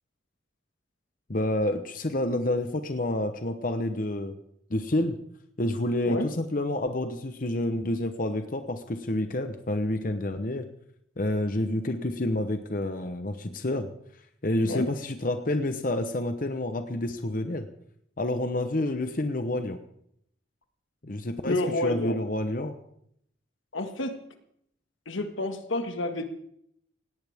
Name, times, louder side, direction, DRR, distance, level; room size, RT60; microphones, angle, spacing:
voice 1, 1.3-4.3 4.7-5.2 5.6-10.7 11.2-13.9 14.4-17.7 18.2-19.8 21.0-22.7, left 1 dB, 45° left, 7 dB, 0.9 m, -29 dB
voice 2, 21.5-22.2 23.7-24.2 25.1-26.3, left 1 dB, 85° left, 7 dB, 1.8 m, -29 dB
17.5 x 17.5 x 3.6 m, 0.71 s
head